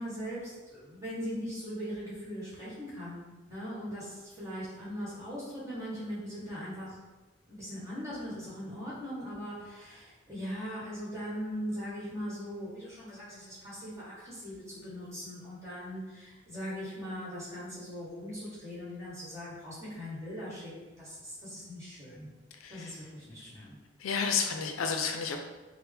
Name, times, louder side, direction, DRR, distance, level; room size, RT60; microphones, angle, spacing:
voice 1, 0.0-7.0 7.5-22.3 22.7-23.8, equal, 15° right, -8 dB, 1.3 m, -40 dB
voice 2, 22.6-23.0 24.0-25.4, left 6 dB, 90° left, 4 dB, 0.4 m, -31 dB
4.4 x 2.1 x 3.3 m, 1.2 s
head